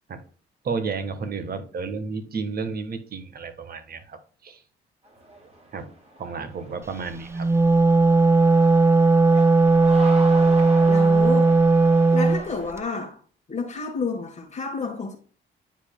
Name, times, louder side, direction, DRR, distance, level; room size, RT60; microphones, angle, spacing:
voice 1, 0.6-4.6 5.7-5.9 6.2-7.5, right 5 dB, 50° right, 1.4 m, -32 dB
sound 1, 5.0-12.7, right 1 dB, 30° right, 2.5 m, -40 dB
Wind instrument woodwind instrument, 7.3-12.4, right 3 dB, 15° right, 0.5 m, -17 dB
voice 2, 10.9-11.6 12.1-13.2 13.5-15.2, left 4 dB, 35° left, 1.4 m, -30 dB
9.7 x 5.0 x 2.3 m
cardioid pair, 90°, 20 cm